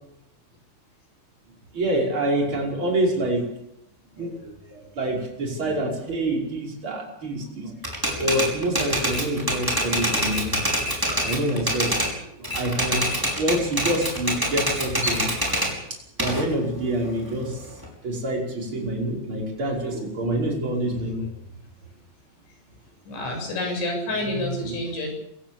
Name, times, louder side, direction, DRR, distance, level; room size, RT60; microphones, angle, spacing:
voice 1, 1.7-3.5 4.2-7.8 8.2-10.5 11.1-11.9 12.4-15.3 15.9-17.7 18.0-21.3 24.2-24.7, right 1 dB, 25° right, -1 dB, 5.9 m, -27 dB
Typewriter, 7.8-12.1 12.4-15.7 16.2-17.8, equal, 5° right, 5.0 m, -25 dB
voice 2, 23.1-25.1, left 1 dB, 75° left, 2 dB, 9.9 m, -29 dB
26.5 x 16.0 x 7.1 m, 0.78 s
omnidirectional pair, 5.4 m